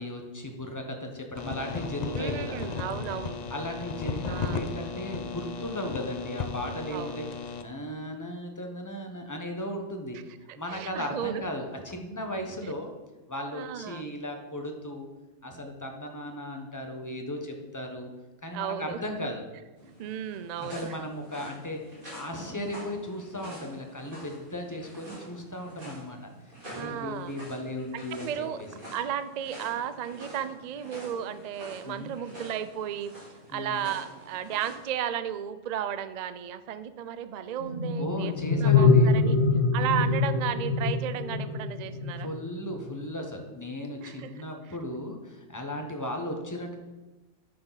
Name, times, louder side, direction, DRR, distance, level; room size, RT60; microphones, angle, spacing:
voice 1, 0.0-2.6 3.5-7.3 7.6-10.2 10.5-12.9 13.3-15.1 15.4-18.1 18.4-19.4 20.6-26.2 26.7-28.3 31.8-32.1 33.5-33.9 37.9-39.1 42.2-46.7, left 1 dB, 15° left, 3 dB, 0.9 m, -36 dB
sound 1, 1.4-7.6, left 5 dB, 50° left, 0.5 m, -35 dB
voice 2, 2.1-3.4 4.2-4.7 6.9-7.2 10.7-11.4 13.5-14.1 18.5-19.0 20.0-21.0 26.7-27.3 27.9-28.6 28.9-33.2 33.5-39.4 39.7-42.3 44.0-44.3, right 9 dB, 85° right, 12 dB, 0.3 m, -34 dB
sound 2, 19.7-34.9, equal, 40° right, 3.7 m, -47 dB
sound 3, 37.6-43.0, left 4 dB, 80° left, 1.5 m, -24 dB
9.7 x 6.8 x 4.0 m, 1.2 s
omnidirectional pair, 1.3 m